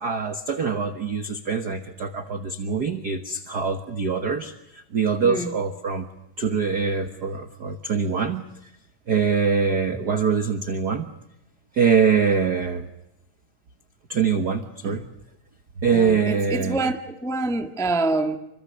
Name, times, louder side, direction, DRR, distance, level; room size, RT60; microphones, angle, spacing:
voice 1, 0.0-6.1 6.4-8.4 9.1-11.1 11.7-12.9 14.1-15.1 15.8-16.9, right 6 dB, 60° right, 1.0 m, -24 dB
voice 2, 15.9-18.4, right 2 dB, ahead, 0.7 m, -26 dB
28.5 x 25.5 x 6.8 m
omnidirectional pair, 3.8 m